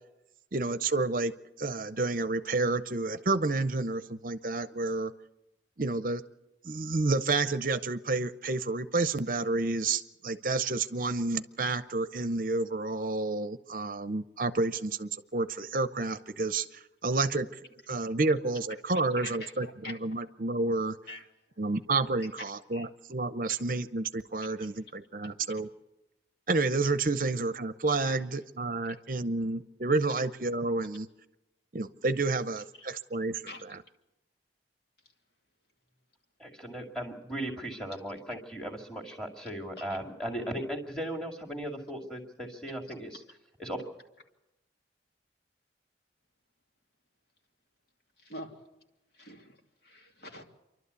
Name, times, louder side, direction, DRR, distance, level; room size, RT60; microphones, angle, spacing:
voice 1, 0.5-1.3 1.6-5.1 5.8-6.2 6.6-17.5 17.9-21.0 21.6-25.7 26.5-31.1 31.7-33.4, right 3 dB, 50° right, 13 dB, 0.7 m, -30 dB
voice 2, 19.2-20.2 21.1-21.2 22.7-22.9 24.6-24.7 32.8-32.9 33.5-33.6 39.8-40.0 42.7-42.8 48.2-48.6 49.1-49.6 49.8-50.4, left 1 dB, 65° left, 2 dB, 2.7 m, -45 dB
voice 3, 36.4-43.2 43.6-43.8, right 1 dB, 5° left, 1 dB, 2.3 m, -37 dB
28.5 x 12.0 x 8.2 m, 0.95 s
head